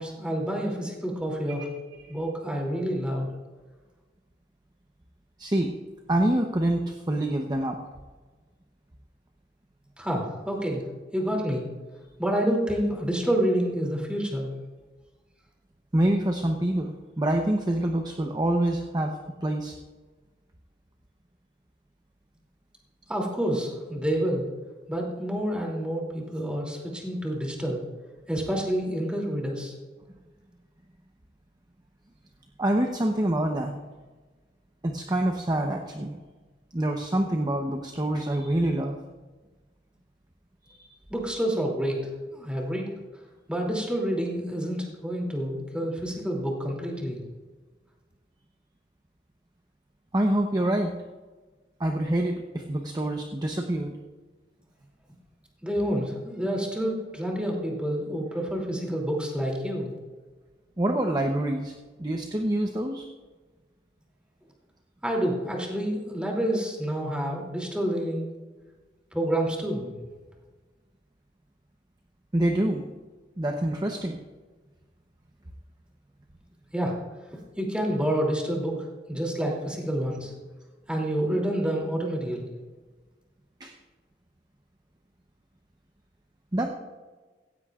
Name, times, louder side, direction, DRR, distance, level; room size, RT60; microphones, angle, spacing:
voice 1, 0.0-1.7 2.1-3.3 10.0-10.8 11.1-11.7 12.2-14.5 23.1-24.5 24.9-27.8 28.3-29.7 41.1-42.9 43.5-47.2 55.6-59.9 65.0-68.3 69.1-69.9 76.7-77.0 77.6-80.3 80.9-82.5, equal, 5° right, -1 dB, 2.8 m, -28 dB
voice 2, 5.4-5.7 6.1-7.8 15.9-19.8 32.6-33.8 34.8-36.2 36.7-39.0 40.7-40.9 50.1-50.9 51.8-54.0 59.6-59.7 60.8-61.7 62.0-63.0 72.3-72.8 73.4-74.2 83.6-83.7 86.5-86.7, right 1 dB, 25° right, 3 dB, 0.8 m, -26 dB
16.5 x 16.0 x 2.5 m, 1.3 s
head